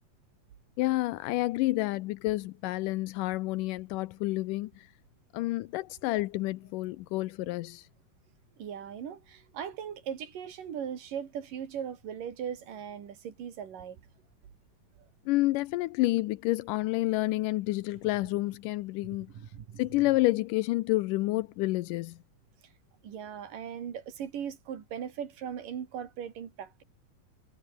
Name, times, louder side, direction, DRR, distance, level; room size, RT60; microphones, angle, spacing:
voice 1, 0.8-4.9 5.3-7.9 15.3-19.3 19.8-22.2, left 19 dB, 85° left, 2.2 m, -29 dB
voice 2, 8.6-14.0 19.0-19.8 23.0-26.8, right 8 dB, 80° right, 4.2 m, -39 dB
omnidirectional pair, 3.8 m